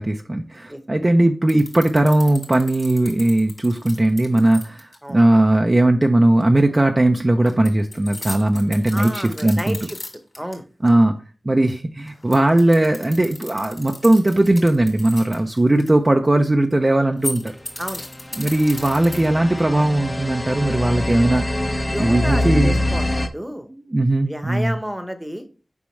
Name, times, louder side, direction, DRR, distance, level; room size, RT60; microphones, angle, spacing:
voice 1, 0.0-9.8 10.8-11.1 11.4-17.5 18.4-21.7 22.0-22.8 23.7-24.8, right 1 dB, 30° right, 3 dB, 0.5 m, -18 dB
sound 1, 1.5-5.0 7.5-10.5 10.9-11.0 12.1-15.9 17.1-19.5, left 2 dB, 50° left, 2.4 m, -35 dB
voice 2, 8.9-10.0 10.4-10.6 17.8-18.0 21.9-23.7 24.2-25.4, equal, 5° right, 8 dB, 1.0 m, -30 dB
sound 2, 17.9-23.3, left 1 dB, 25° left, 0.7 m, -24 dB
7.1 x 5.2 x 3.2 m, 0.36 s
wide cardioid pair, 90°, 0 cm